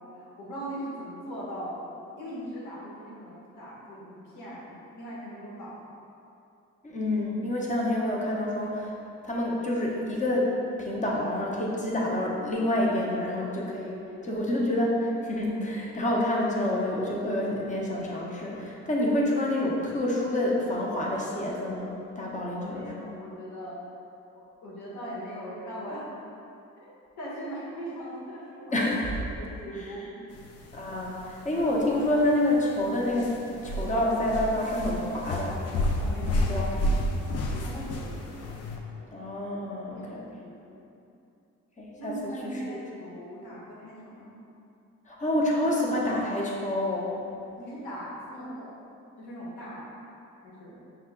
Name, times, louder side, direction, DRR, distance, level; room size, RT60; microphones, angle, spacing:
voice 1, 0.0-1.8 2.1-5.9 14.1-14.4 22.6-23.8 24.3-26.1 26.8-26.9 27.2-28.8 29.2-30.3 36.0-36.6 36.9-38.5 38.9-39.1 39.9-40.8 42.0-44.4 47.6-48.7 49.2-49.9 50.4-50.8, equal, 85° left, -7 dB, 1.4 m, -40 dB
voice 2, 6.8-8.9 9.2-10.5 10.8-23.1 28.7-29.1 30.7-33.3 33.6-35.6 36.5-36.7 39.1-40.3 41.8-42.8 45.1-47.1, left 1 dB, 25° left, -3 dB, 0.8 m, -28 dB
sound 1, 30.3-38.8, left 1 dB, 55° left, 0.5 m, -31 dB
5.6 x 2.2 x 3.6 m, 2.7 s
cardioid pair, 90°, 30 cm